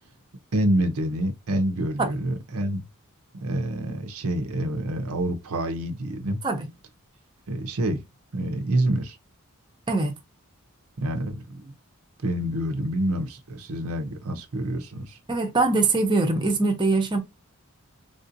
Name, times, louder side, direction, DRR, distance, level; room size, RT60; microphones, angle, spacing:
voice 1, 0.5-2.8 3.4-6.4 7.5-8.0 8.3-9.2 11.0-11.7 12.2-15.2, right 1 dB, 75° right, 0.6 m, -27 dB
voice 2, 15.3-17.2, right 3 dB, 20° right, 0.7 m, -22 dB
3.6 x 2.5 x 2.5 m
head